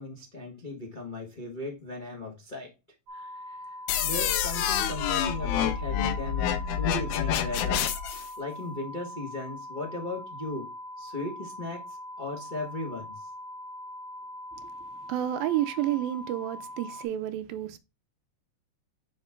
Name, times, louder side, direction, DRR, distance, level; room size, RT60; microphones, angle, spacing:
voice 1, 0.0-2.7 3.1-3.7 4.0-13.3, left 2 dB, 70° left, 0.4 m, -37 dB
sound 1, 3.1-17.1, left 1 dB, 50° right, 1.8 m, -42 dB
sound 2, 3.9-8.3, left 9 dB, 85° left, 1.7 m, -28 dB
voice 2, 15.1-17.8, right 12 dB, 80° right, 2.3 m, -30 dB
5.5 x 5.4 x 3.6 m
omnidirectional pair, 4.2 m